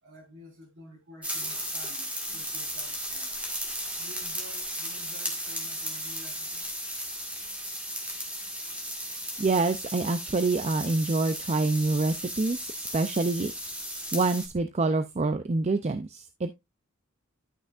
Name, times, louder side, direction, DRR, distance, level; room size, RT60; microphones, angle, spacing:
voice 1, 0.0-3.4 4.0-6.8, left 1 dB, 60° right, 4.3 m, -50 dB
sound 1, 1.2-14.5, equal, 5° right, 1.9 m, -35 dB
voice 2, 9.4-13.5 14.1-16.5, right 3 dB, 30° right, 0.4 m, -26 dB
11.0 x 6.2 x 2.5 m
head